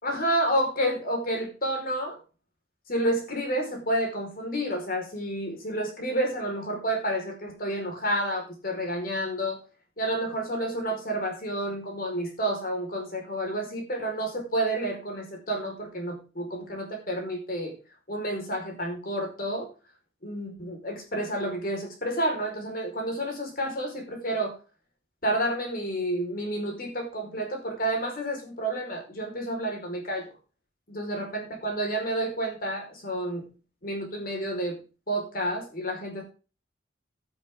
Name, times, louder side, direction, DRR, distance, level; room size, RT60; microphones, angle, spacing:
voice 1, 0.0-2.2 2.9-9.6 10.0-17.7 18.1-19.7 20.2-24.5 25.2-30.2 30.9-33.5 33.8-34.8 35.1-36.2, right 1 dB, 50° left, 2 dB, 4.9 m, -30 dB
12.0 x 10.5 x 3.8 m, 0.33 s
head